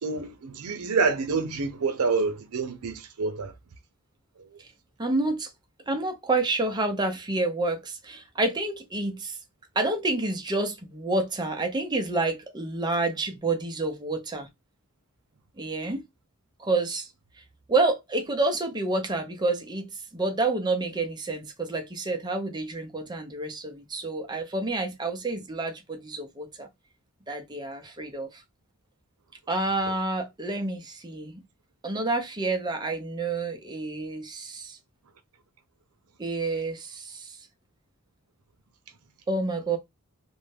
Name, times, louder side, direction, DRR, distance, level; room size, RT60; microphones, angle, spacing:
voice 1, 0.0-3.5, right 4 dB, 80° right, 0.6 m, -27 dB
voice 2, 5.0-5.5 5.9-9.4 9.8-14.5 15.6-16.0 16.6-17.1 17.7-26.7 27.3-28.4 29.5-31.4 31.8-34.8 36.2-37.4 39.3-39.8, right 2 dB, 20° right, 0.5 m, -29 dB
2.5 x 2.1 x 3.2 m
head